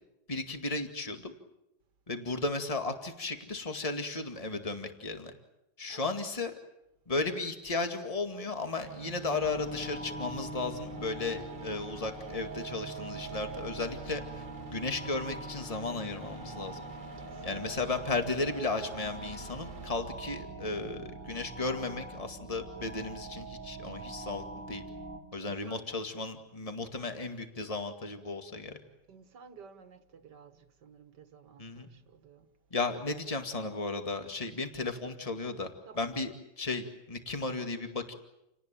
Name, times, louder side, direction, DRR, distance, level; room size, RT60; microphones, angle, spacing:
voice 1, 0.3-1.3 2.1-5.3 5.8-6.5 7.1-14.2 14.7-16.8 17.4-24.8 25.3-28.8 31.6-31.9 32.7-38.1, left 3 dB, 20° left, 2.2 m, -35 dB
sound 1, 8.8-19.9, right 4 dB, 50° right, 2.3 m, -47 dB
sound 2, 9.4-25.2, right 2 dB, 5° left, 4.1 m, -44 dB
voice 2, 25.4-25.8 29.1-32.5 35.9-36.1, right 6 dB, 85° right, 2.2 m, -53 dB
29.5 x 18.5 x 9.1 m
omnidirectional pair, 1.8 m